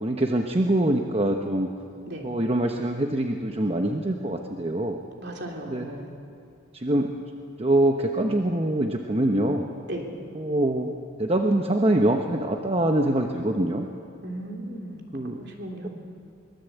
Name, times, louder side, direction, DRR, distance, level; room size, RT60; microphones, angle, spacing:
voice 1, 0.0-1.7 2.2-5.0 5.7-5.9 6.7-7.1 7.6-9.7 10.3-10.9 11.2-13.9 15.1-15.4, right 1 dB, 30° right, 3 dB, 1.0 m, -24 dB
voice 2, 5.2-6.1 9.9-10.1 14.2-15.0 15.4-15.9, right 1 dB, 55° right, 1 dB, 3.3 m, -36 dB
23.5 x 21.0 x 8.2 m, 2.5 s
head